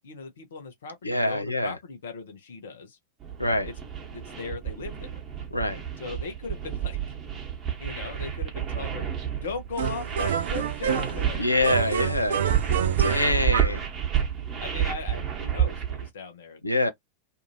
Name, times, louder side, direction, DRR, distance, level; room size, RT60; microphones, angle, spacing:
voice 1, 0.0-3.0 4.1-5.1 6.0-7.0 7.8-9.1 9.4-11.5 13.0-13.2 13.6-13.8 14.6-16.6, left 4 dB, 60° left, 0.8 m, -38 dB
voice 2, 1.0-1.8 3.4-3.7 5.5-5.8 11.4-12.4 13.0-13.8 16.6-16.9, left 2 dB, 85° left, 0.5 m, -25 dB
sound 1, 3.2-16.1, right 9 dB, 25° right, 1.1 m, -30 dB
sound 2, 9.8-11.3 11.6-13.8, right 8 dB, 60° right, 0.3 m, -28 dB
2.7 x 2.5 x 2.7 m
figure-of-eight pair, 90°, 0 cm